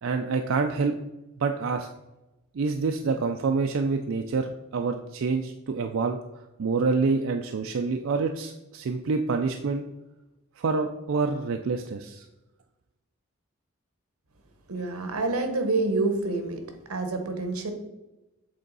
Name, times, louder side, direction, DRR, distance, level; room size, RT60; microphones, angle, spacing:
voice 1, 0.0-0.9 1.4-1.9 2.5-9.8 10.6-12.3, right 4 dB, 65° right, 5 dB, 0.4 m, -27 dB
voice 2, 14.7-16.6 16.9-17.7, right 3 dB, 90° right, 6 dB, 1.0 m, -27 dB
7.7 x 3.8 x 4.0 m, 1.0 s
head